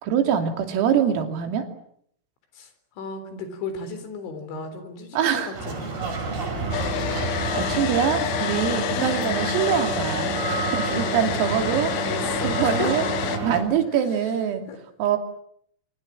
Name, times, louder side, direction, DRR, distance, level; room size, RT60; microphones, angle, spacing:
voice 1, 0.0-1.7 5.1-5.6 7.1-11.9 12.4-13.0 13.4-14.7 15.0-15.2, right 8 dB, 85° right, 6 dB, 5.5 m, -24 dB
voice 2, 2.5-6.3 9.0-9.3 11.0-11.5 12.0-12.9 14.7-14.8, left 4 dB, 65° left, 10 dB, 6.1 m, -35 dB
sound 1, 5.5-13.6, right 3 dB, 50° right, 8.9 m, -29 dB
Domestic sounds home sounds, 6.7-13.4, left 12 dB, 90° left, 4.3 m, -29 dB
28.0 x 25.0 x 7.7 m, 0.68 s
omnidirectional pair, 5.9 m